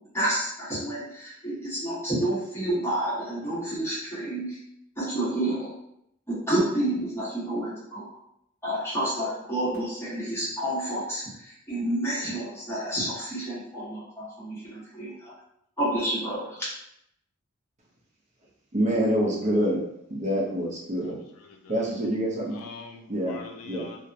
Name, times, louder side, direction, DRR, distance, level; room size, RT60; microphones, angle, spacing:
voice 1, 0.1-4.6 5.0-5.7 6.3-8.1 8.6-15.3 15.8-16.7, right 1 dB, 10° left, 1.0 m, -29 dB
voice 2, 18.7-19.8 20.1-21.2 21.7-22.6 23.1-23.4 23.6-23.8, equal, 35° right, 0.6 m, -26 dB
voice 3, 21.0-21.9 22.5-24.1, left 4 dB, 80° left, 0.4 m, -45 dB
2.7 x 2.1 x 2.4 m
head